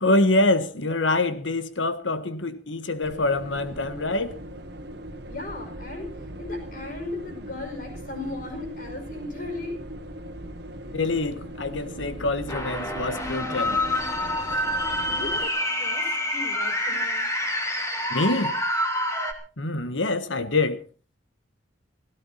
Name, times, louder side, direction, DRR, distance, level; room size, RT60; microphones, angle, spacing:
voice 1, 0.0-4.4 10.9-13.8 14.4-14.6 18.1-18.6 19.6-20.8, left 2 dB, 80° left, 1.5 m, -25 dB
sound 1, 3.0-15.5, right 1 dB, 55° right, 1.7 m, -39 dB
voice 2, 5.3-6.1 6.4-9.8 15.0-17.3, left 2 dB, 50° left, 5.6 m, -36 dB
sound 2, 12.5-19.3, left 1 dB, 15° left, 2.7 m, -27 dB
17.0 x 16.5 x 4.3 m
head